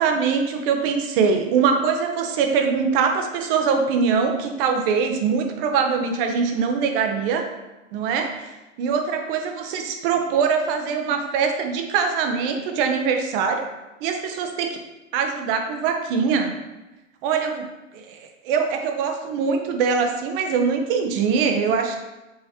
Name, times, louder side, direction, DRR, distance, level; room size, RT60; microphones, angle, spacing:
voice 1, 0.0-7.5 7.9-8.5 8.8-13.6 14.0-14.8 15.1-16.6 17.2-17.7 17.9-22.0, right 6 dB, 45° right, 4 dB, 0.6 m, -23 dB
4.7 x 3.1 x 2.7 m, 1.0 s
hypercardioid pair, 105°, 39 cm